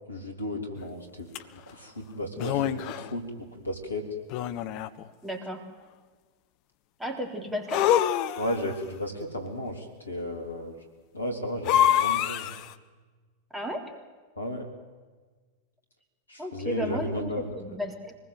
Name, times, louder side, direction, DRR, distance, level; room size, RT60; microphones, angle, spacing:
voice 1, 0.1-1.3 1.7-4.0 8.4-10.8 11.1-12.5 14.4-14.6 16.3-17.5, left 1 dB, 80° left, 3 dB, 3.5 m, -34 dB
sound 1, 1.3-1.4 2.4-3.1 4.3-5.1 7.7-8.7 11.6-12.7, left 11 dB, 45° left, 1.0 m, -25 dB
voice 2, 5.2-5.6 7.0-7.9 13.5-13.9 16.4-18.2, equal, 5° right, 3 dB, 3.6 m, -34 dB
25.0 x 20.0 x 8.1 m, 1.4 s
figure-of-eight pair, 90°, 0 cm